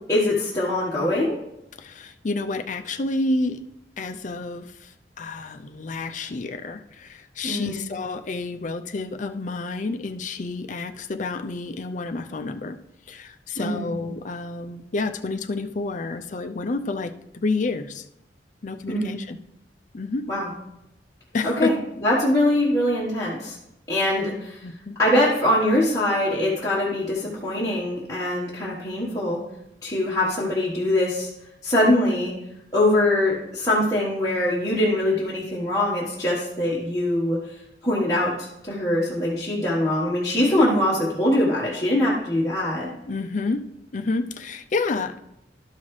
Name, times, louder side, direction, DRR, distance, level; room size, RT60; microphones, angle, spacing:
voice 1, 0.1-1.4 7.4-7.8 13.6-13.9 18.9-19.1 20.3-20.5 21.4-21.7 22.0-23.6 23.9-24.6 25.0-29.4 29.8-31.3 31.6-32.3 32.7-37.4 37.8-42.9, left 1 dB, 20° left, -7 dB, 1.3 m, -23 dB
voice 2, 1.8-3.6 4.0-12.8 13.1-18.1 18.6-19.4 19.9-20.2 21.3-21.7 24.6-25.0 43.1-43.6 43.9-45.2, left 3 dB, 45° left, 8 dB, 0.5 m, -29 dB
12.0 x 5.6 x 3.2 m, 0.84 s
head